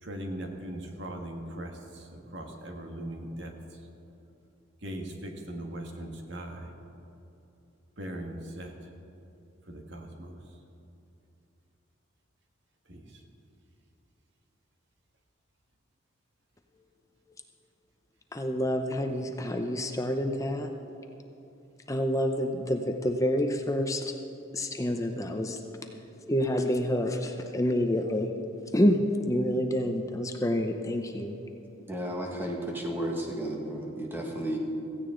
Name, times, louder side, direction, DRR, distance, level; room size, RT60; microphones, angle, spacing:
voice 1, 0.0-3.9 4.8-6.7 8.0-8.9 9.7-10.6 12.9-13.2, right 1 dB, 60° right, 2 dB, 1.7 m, -40 dB
voice 2, 18.3-20.7 21.9-24.0 24.5-25.6 26.3-28.3 28.7-31.3, equal, 15° left, 4 dB, 0.7 m, -28 dB
voice 3, 31.9-34.6, right 1 dB, 10° right, 0 dB, 1.7 m, -33 dB
16.5 x 15.5 x 3.8 m, 2.8 s
head